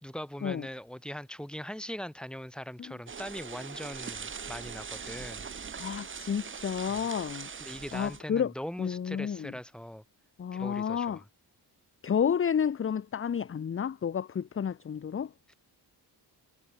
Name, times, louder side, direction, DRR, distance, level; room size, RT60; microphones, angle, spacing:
voice 1, 0.0-5.5 6.9-7.1 7.6-10.0 10.5-11.2, equal, ahead, 3.1 m, -41 dB
sound 1, 3.1-8.2, right 6 dB, 30° right, 0.9 m, -41 dB
voice 2, 5.8-7.5 7.9-8.5 8.8-9.5 10.4-11.2 12.0-15.5, left 7 dB, 30° left, 0.6 m, -31 dB
wide cardioid pair, 160°, 41 cm